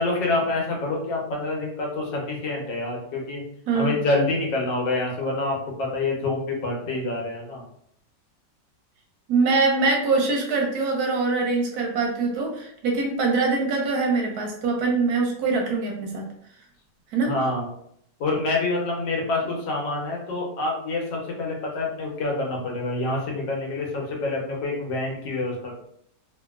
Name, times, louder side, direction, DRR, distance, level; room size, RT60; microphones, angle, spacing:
voice 1, 0.0-3.4 3.7-7.6 17.2-17.7 18.2-25.7, left 2 dB, 90° left, -1 dB, 1.5 m, -27 dB
voice 2, 9.3-16.3 17.1-17.3, right 4 dB, 70° right, 1 dB, 1.0 m, -23 dB
2.9 x 2.7 x 2.3 m, 0.71 s
omnidirectional pair, 1.9 m